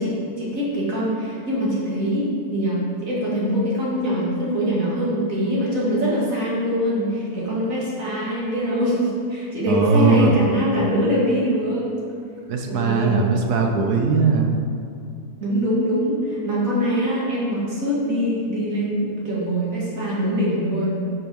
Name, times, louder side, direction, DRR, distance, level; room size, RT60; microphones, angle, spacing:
voice 1, 0.0-11.9 12.7-13.2 15.4-21.0, equal, 55° right, -7 dB, 2.4 m, -23 dB
voice 2, 9.7-10.4 12.5-14.5, right 4 dB, 90° right, 2 dB, 1.4 m, -19 dB
9.8 x 5.4 x 4.6 m, 2.5 s
omnidirectional pair, 1.7 m